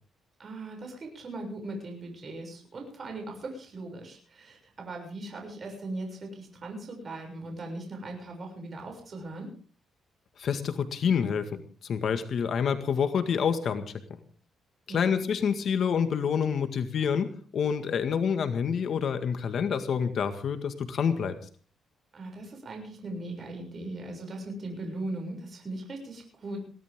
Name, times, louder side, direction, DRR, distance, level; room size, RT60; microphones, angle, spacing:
voice 1, 0.4-9.5 14.9-15.1 22.1-26.6, right 2 dB, 40° right, 2 dB, 6.9 m, -39 dB
voice 2, 10.4-13.9 14.9-21.4, left 7 dB, 55° left, 8 dB, 1.8 m, -27 dB
22.0 x 17.0 x 3.7 m, 0.40 s
cardioid pair, 120°, 0 cm